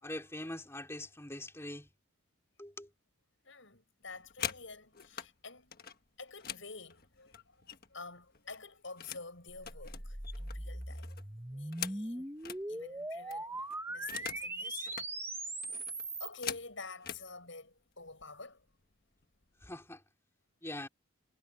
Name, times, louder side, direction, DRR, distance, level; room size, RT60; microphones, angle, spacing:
voice 1, 0.0-1.9 2.6-2.9 19.6-20.0 20.6-20.9, left 1 dB, 10° left, 3.4 m, -43 dB
voice 2, 3.4-5.7 6.2-11.2 11.5-12.4 12.7-15.0 15.5-15.7 16.2-18.7, left 4 dB, 65° left, 7.8 m, -49 dB
sound 1, 4.0-5.3 5.7-8.0 8.3-9.3 9.6-12.6 13.0-13.1 13.3-14.5 14.8-15.1 15.6-17.3 18.1-18.2 18.6-18.9 19.2-19.7, left 8 dB, 45° left, 1.5 m, -44 dB
sound 2, 9.5-16.3, right 2 dB, 10° right, 2.0 m, -40 dB
head